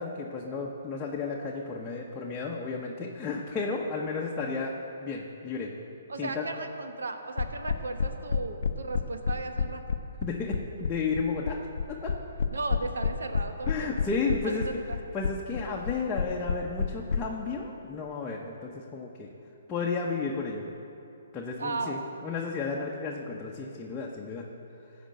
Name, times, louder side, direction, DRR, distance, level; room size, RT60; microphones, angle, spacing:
voice 1, 0.0-4.7 5.0-5.7 6.2-6.5 10.2-11.6 11.9-12.1 13.7-14.7 15.1-19.3 19.7-20.6 21.3-24.5, left 4 dB, 15° left, -3 dB, 1.0 m, -33 dB
voice 2, 6.1-9.8 12.5-13.9 14.2-15.0 21.6-22.0, right 3 dB, 85° right, 6 dB, 1.2 m, -35 dB
sound 1, 7.4-17.2, left 6 dB, 75° left, 0.6 m, -28 dB
15.0 x 5.2 x 7.7 m, 2.7 s
hypercardioid pair, 140°, 0 cm